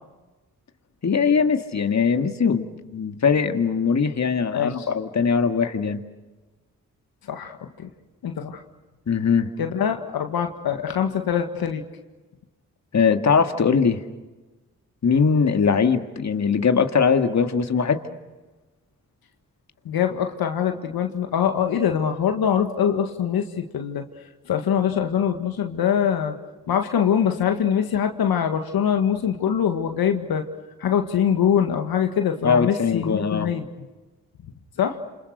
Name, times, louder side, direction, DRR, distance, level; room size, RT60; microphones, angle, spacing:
voice 1, 1.0-6.0 9.1-9.5 12.9-14.0 15.0-18.0 32.4-33.5, left 6 dB, 50° left, 7 dB, 2.1 m, -21 dB
voice 2, 4.5-4.9 7.3-7.9 8.2-8.6 9.6-11.8 19.9-24.0 24.5-30.5 30.8-33.6 34.8-35.0, left 8 dB, 75° left, 5 dB, 1.9 m, -23 dB
28.5 x 26.5 x 6.6 m, 1.2 s
supercardioid pair, 45°, 37 cm